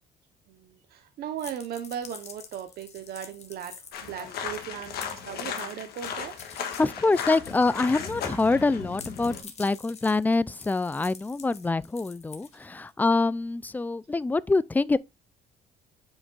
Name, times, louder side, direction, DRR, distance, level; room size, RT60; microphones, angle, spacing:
voice 1, 0.5-3.8 4.0-6.3, right 9 dB, 65° right, 1.0 m, -37 dB
sound 1, 1.4-8.6 8.9-12.9, left 6 dB, 40° left, 1.6 m, -48 dB
sound 2, 3.9-9.4, left 7 dB, 70° left, 1.6 m, -36 dB
voice 2, 6.8-15.0, left 3 dB, 10° left, 0.4 m, -25 dB
8.8 x 5.1 x 2.4 m
cardioid pair, 110°, 17 cm